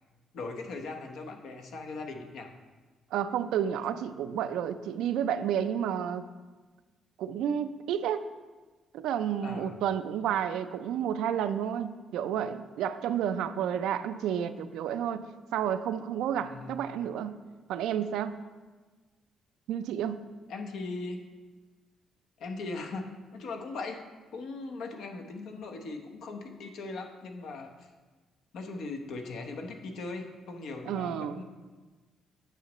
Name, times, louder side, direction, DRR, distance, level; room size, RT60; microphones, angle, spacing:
voice 1, 0.3-2.5 9.4-9.8 16.3-16.8 20.5-21.2 22.4-24.0 24.3-27.9 28.5-31.4, left 3 dB, 75° left, 3 dB, 0.9 m, -39 dB
voice 2, 3.1-6.2 7.2-8.2 8.9-15.2 15.5-17.3 17.7-18.4 19.7-20.2 30.8-31.4, right 9 dB, 90° right, 11 dB, 0.3 m, -31 dB
9.1 x 6.3 x 3.0 m, 1.3 s
cardioid pair, 90°, 0 cm